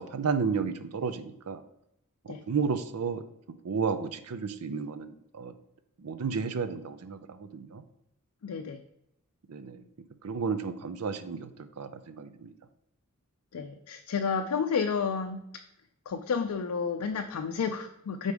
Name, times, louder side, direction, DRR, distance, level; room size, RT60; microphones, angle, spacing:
voice 1, 0.0-1.6 2.2-3.2 3.6-5.5 6.0-7.8 9.5-9.8 10.2-12.5, right 5 dB, 80° right, 11 dB, 0.5 m, -32 dB
voice 2, 8.4-8.8 13.5-15.4 16.1-18.3, left 6 dB, 80° left, 5 dB, 0.4 m, -31 dB
5.0 x 4.1 x 4.7 m, 0.81 s
head